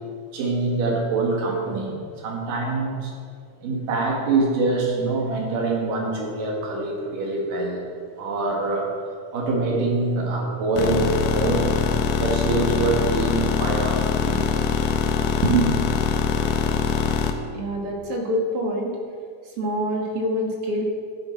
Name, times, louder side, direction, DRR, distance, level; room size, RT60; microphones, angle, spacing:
voice 1, 0.3-3.1 3.6-7.8 8.2-8.9 9.3-11.7 12.1-14.7 15.4-15.8, right 3 dB, 85° right, 0 dB, 3.4 m, -24 dB
sound 1, 10.8-17.3, left 6 dB, 80° left, 2.4 m, -23 dB
voice 2, 17.5-18.9 19.6-20.8, equal, 55° right, 0 dB, 2.1 m, -26 dB
12.5 x 9.6 x 4.5 m, 2.1 s
omnidirectional pair, 3.7 m